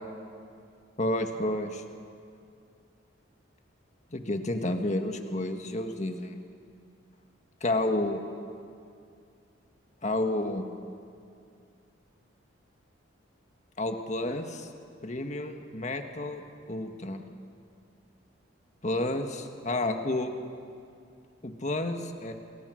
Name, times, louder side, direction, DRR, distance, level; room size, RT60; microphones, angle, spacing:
voice 1, 1.0-1.8 4.1-6.4 7.6-8.2 10.0-10.6 13.8-14.7 15.0-16.4 16.7-17.2 18.8-20.3 21.4-22.3, left 1 dB, 35° left, 5 dB, 1.6 m, -30 dB
28.0 x 22.0 x 6.4 m, 2.4 s
head